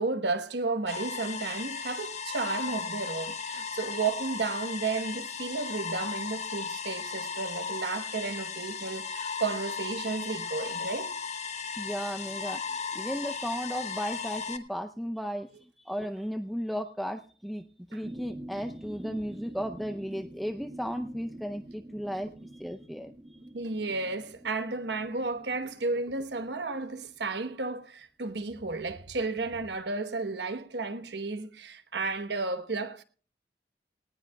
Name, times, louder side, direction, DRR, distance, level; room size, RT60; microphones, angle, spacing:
voice 1, 0.0-11.1 17.9-18.0 23.5-33.0, right 3 dB, 70° right, 1.1 m, -33 dB
sound 1, 0.9-14.6, left 5 dB, 40° left, 1.1 m, -36 dB
voice 2, 11.8-23.1, equal, ahead, 0.5 m, -35 dB
sound 2, 18.0-27.2 27.6-27.7, right 1 dB, 20° right, 1.2 m, -47 dB
19.0 x 17.5 x 2.3 m
head